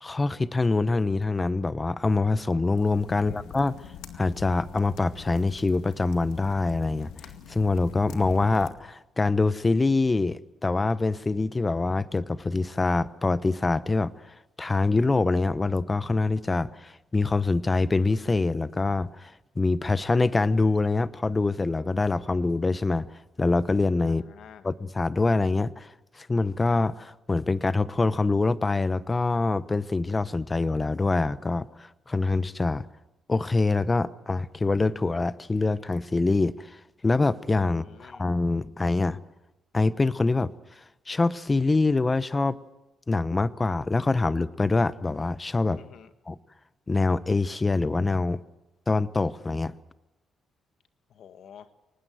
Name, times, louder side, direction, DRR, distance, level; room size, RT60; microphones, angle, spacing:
voice 1, 0.0-3.7 4.2-7.1 7.5-14.1 14.6-23.1 23.4-24.2 24.6-32.9 33.3-36.7 37.0-39.2 39.7-40.5 41.1-42.6 43.1-45.8 46.3-46.4 46.9-48.4 48.9-49.7, left 3 dB, 25° left, 16 dB, 0.9 m, -25 dB
sound 1, 2.8-8.7, left 7 dB, 90° left, 2.1 m, -44 dB
voice 2, 3.1-3.6 24.0-24.7 37.7-38.3 45.8-46.1 51.1-51.7, left 8 dB, 70° left, 9 dB, 1.7 m, -50 dB
23.5 x 20.0 x 7.8 m, 0.99 s
cardioid pair, 90°, 0 cm